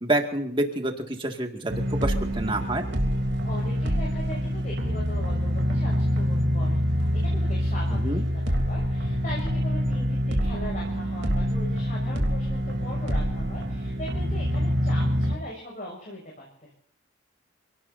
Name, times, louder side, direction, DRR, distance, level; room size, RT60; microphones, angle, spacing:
voice 1, 0.0-2.8 7.9-8.2, right 1 dB, 25° right, 4 dB, 2.1 m, -28 dB
sound 1, 1.7-15.3, equal, 60° right, 3.2 m, -26 dB
voice 2, 3.4-16.7, left 1 dB, 40° left, -2 dB, 6.4 m, -40 dB
29.0 x 18.0 x 2.7 m, 0.63 s
head